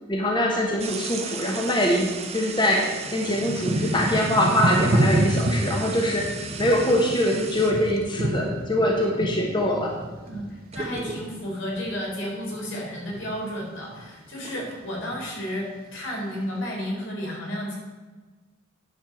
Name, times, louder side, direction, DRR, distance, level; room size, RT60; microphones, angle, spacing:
voice 1, 0.1-6.3 6.6-9.9, equal, 25° left, 0 dB, 1.2 m, -23 dB
sound 1, 0.8-8.2 10.3-10.4 10.7-11.6 12.2-12.3 12.8-14.8, right 5 dB, 35° right, 0.9 m, -37 dB
Thunder / Rain, 1.9-2.0 2.7-12.2 12.5-13.4 13.9-14.3 14.5-15.4 16.0-16.1, right 1 dB, 50° right, 1.1 m, -28 dB
voice 2, 10.2-17.7, equal, 80° left, -2 dB, 3.8 m, -32 dB
10.0 x 5.4 x 7.5 m, 1.3 s
head